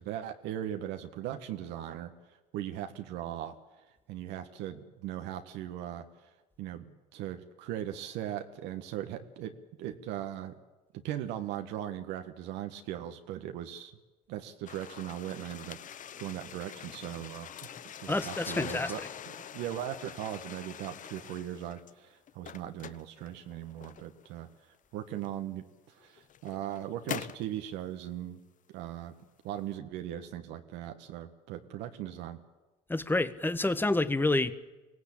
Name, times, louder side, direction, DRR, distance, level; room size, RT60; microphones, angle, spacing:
voice 1, 0.0-2.1 2.5-3.5 4.1-6.1 6.6-10.5 11.0-13.9 14.3-15.8 16.2-19.0 19.5-24.5 24.9-28.4 28.7-29.1 29.4-32.4, right 11 dB, 75° right, 1.5 m, -39 dB
sound 1, 14.7-21.9 22.3-24.3 25.2-25.3 26.0-27.5, left 9 dB, 45° left, 0.9 m, -44 dB
voice 2, 18.1-19.1 32.9-34.5, left 2 dB, 10° left, 1.3 m, -28 dB
23.5 x 16.5 x 8.7 m
hypercardioid pair, 70°, 18 cm